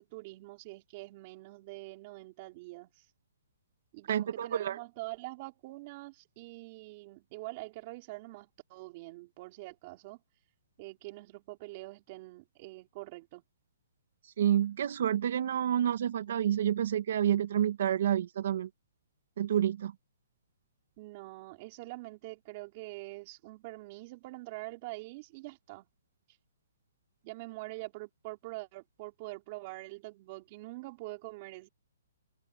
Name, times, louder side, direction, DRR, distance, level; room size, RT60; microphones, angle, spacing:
voice 1, 0.0-3.0 3.9-10.2 10.8-13.4 21.0-25.9 27.2-31.7, right 22 dB, 30° right, 4.3 m, -45 dB
voice 2, 4.1-4.8 14.4-18.7 19.4-19.9, right 10 dB, 55° right, 2.3 m, -29 dB
hypercardioid pair, 165°, 0 cm